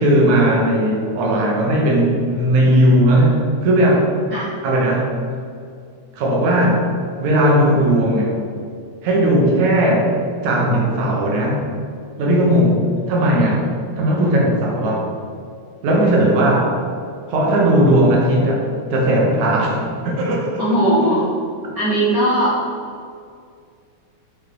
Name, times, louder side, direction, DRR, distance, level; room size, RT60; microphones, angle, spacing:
voice 1, 0.0-4.1 4.6-5.2 6.1-6.9 7.2-8.4 9.0-10.1 10.4-11.7 12.2-13.7 14.0-15.1 15.8-16.7 17.3-20.6, right 1 dB, 80° right, -2 dB, 2.6 m, -17 dB
voice 2, 20.6-21.2 21.7-22.6, right 1 dB, 50° right, -8 dB, 1.5 m, -18 dB
6.5 x 5.2 x 4.6 m, 2.3 s
omnidirectional pair, 3.3 m